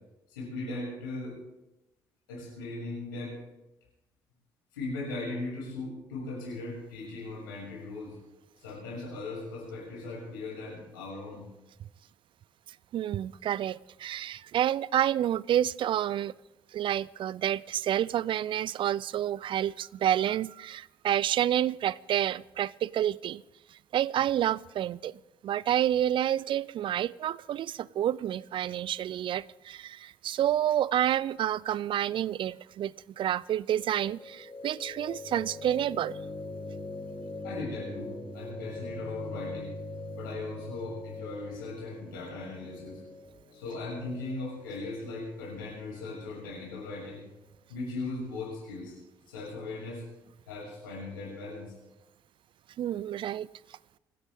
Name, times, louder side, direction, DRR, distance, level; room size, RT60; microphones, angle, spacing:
voice 1, 0.3-1.3 2.3-3.4 4.7-8.2 8.6-11.5 37.4-39.7 40.1-43.0 43.5-47.2 47.7-49.0 49.3-50.0 50.5-51.7, left 2 dB, 85° left, 6.9 m, -38 dB
voice 2, 12.9-16.3 16.7-23.4 23.7-36.2 52.8-53.5, right 11 dB, 50° right, 0.4 m, -29 dB
sound 1, 33.8-45.8, left 2 dB, 35° left, 6.5 m, -42 dB
26.5 x 13.0 x 3.7 m
hypercardioid pair, 50°, 11 cm